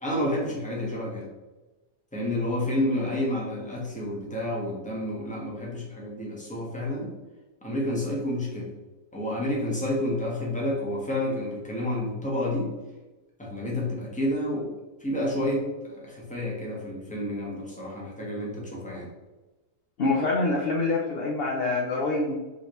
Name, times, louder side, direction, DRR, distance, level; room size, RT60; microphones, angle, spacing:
voice 1, 0.0-1.3 2.1-7.1 7.6-8.7 9.1-12.7 13.4-14.7 15.0-19.1, left 1 dB, 5° left, -4 dB, 1.0 m, -29 dB
voice 2, 20.0-22.4, left 3 dB, 60° left, -2 dB, 0.6 m, -25 dB
4.9 x 3.3 x 3.1 m, 1.1 s
omnidirectional pair, 1.7 m